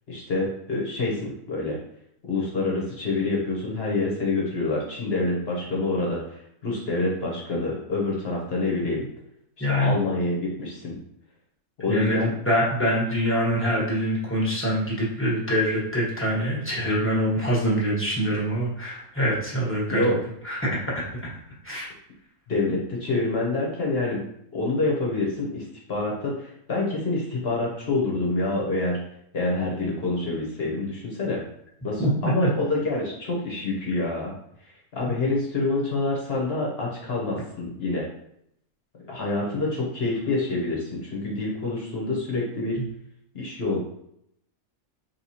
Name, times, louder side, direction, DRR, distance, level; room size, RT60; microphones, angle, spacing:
voice 1, 0.1-1.8 2.2-9.0 9.8-11.0 11.8-12.3 19.9-20.2 22.5-24.2 24.5-29.0 29.3-31.4 31.8-34.3 34.9-38.0 39.1-42.8 43.3-43.8, left 2 dB, 50° left, -3 dB, 1.1 m, -27 dB
voice 2, 9.6-10.0 11.9-20.1 20.4-21.3 21.6-21.9 32.0-32.5, equal, 10° left, -6 dB, 1.1 m, -24 dB
4.6 x 3.1 x 2.8 m, 0.74 s
omnidirectional pair, 1.5 m